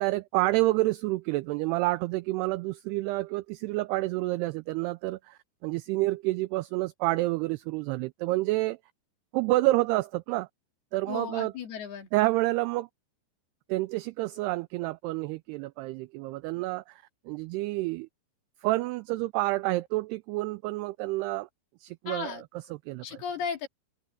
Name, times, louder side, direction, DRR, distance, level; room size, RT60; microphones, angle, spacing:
voice 1, 0.0-8.8 9.3-10.5 10.9-11.5 12.1-12.9 13.7-18.1 18.6-21.5 21.8-22.4 22.7-23.2, right 19 dB, 90° right, 2.3 m, -29 dB
voice 2, 11.1-12.1 22.1-22.4 23.0-23.7, left 7 dB, 65° left, 4.4 m, -35 dB
omnidirectional pair, 5.2 m